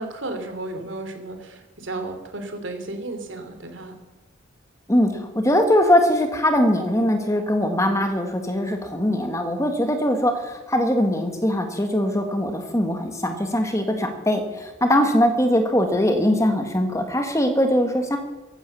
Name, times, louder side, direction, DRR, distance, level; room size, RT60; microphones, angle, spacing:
voice 1, 0.0-3.9 14.9-15.0, right 2 dB, 65° right, 6 dB, 2.9 m, -33 dB
voice 2, 4.9-18.2, left 1 dB, 15° left, 5 dB, 1.6 m, -21 dB
15.5 x 11.5 x 6.9 m, 1.1 s
head